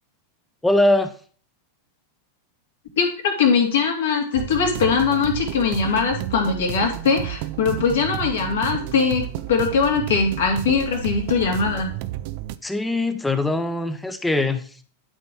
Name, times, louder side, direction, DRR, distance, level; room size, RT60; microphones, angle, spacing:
voice 1, 0.6-1.1 12.6-14.6, left 2 dB, 5° left, 10 dB, 0.9 m, -21 dB
voice 2, 3.0-11.9, left 5 dB, 60° left, 2 dB, 2.4 m, -21 dB
sound 1, 4.3-12.6, right 14 dB, 50° right, 0.5 m, -31 dB
11.5 x 4.5 x 4.5 m, 0.44 s
figure-of-eight pair, 90°, 0 cm